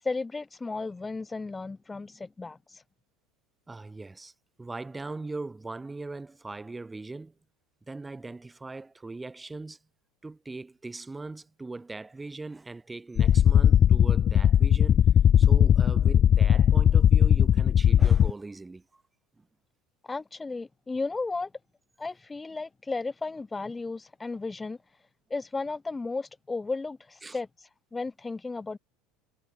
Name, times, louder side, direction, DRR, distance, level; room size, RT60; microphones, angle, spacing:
voice 1, 0.0-2.8 20.0-21.5 22.0-25.0 25.3-28.8, left 3 dB, 15° left, 1.1 m, -34 dB
voice 2, 3.7-4.3 4.6-7.3 7.9-9.8 10.2-15.1 15.4-19.0 19.4-19.5 27.2-27.4, right 3 dB, 15° right, 5.1 m, -40 dB
sound 1, 13.2-18.3, left 9 dB, 40° left, 0.5 m, -19 dB
hypercardioid pair, 75°, 0 cm